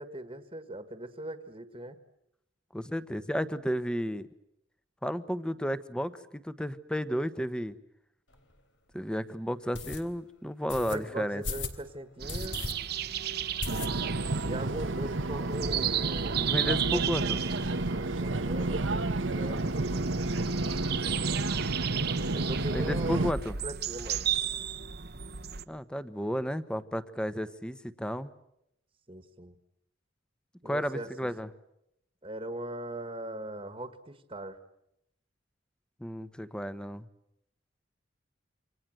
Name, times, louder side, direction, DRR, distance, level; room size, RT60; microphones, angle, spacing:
voice 1, 0.0-2.0 10.8-12.6 14.4-17.0 17.9-19.8 22.3-23.3 23.6-24.3 29.1-29.5 30.6-31.3 32.2-34.6, right 1 dB, 30° right, 10 dB, 1.6 m, -40 dB
voice 2, 2.7-4.3 5.0-7.7 8.9-11.4 16.4-17.4 22.7-23.5 25.7-28.3 30.6-31.5 36.0-37.0, equal, 5° left, 13 dB, 1.1 m, -33 dB
sound 1, 8.3-8.4 8.9-9.0 9.7-10.0 10.7-11.0 11.4-11.8 12.3-12.7 13.0-13.1 13.6-14.3 14.6-14.7 14.9-15.0 15.3-15.9, left 3 dB, 80° left, 3.2 m, -36 dB
sound 2, 12.2-25.6, right 10 dB, 55° right, 1.1 m, -35 dB
sound 3, 13.7-23.3, right 2 dB, 90° right, 1.3 m, -31 dB
28.5 x 26.0 x 7.9 m, 0.81 s
head